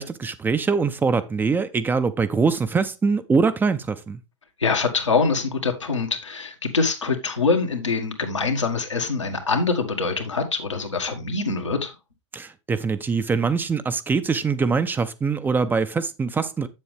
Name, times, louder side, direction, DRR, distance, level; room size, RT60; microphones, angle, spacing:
voice 1, 0.0-4.2 12.3-16.7, right 5 dB, 15° right, 0.5 m, -23 dB
voice 2, 4.6-11.9, left 4 dB, 85° left, 1.7 m, -24 dB
7.9 x 7.3 x 3.3 m
figure-of-eight pair, 100°, 15 cm